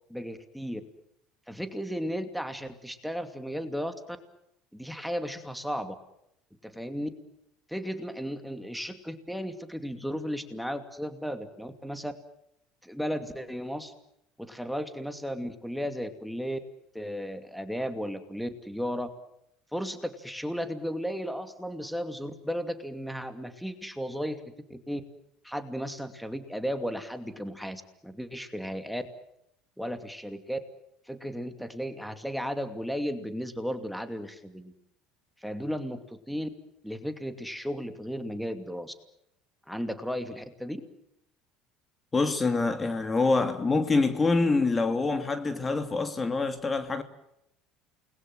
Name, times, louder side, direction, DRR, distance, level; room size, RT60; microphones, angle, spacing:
voice 1, 0.1-0.8 1.5-3.9 4.7-5.9 6.6-7.1 7.7-12.1 12.8-13.9 14.4-16.6 16.9-19.1 19.7-24.4 24.7-25.0 25.4-29.0 29.8-30.6 31.1-34.7 35.4-36.5 36.8-38.9 39.7-40.8, equal, ahead, 2.6 m, -34 dB
voice 2, 42.1-47.0, left 3 dB, 25° left, 2.5 m, -25 dB
29.0 x 21.0 x 7.7 m
hypercardioid pair, 75°, 0 cm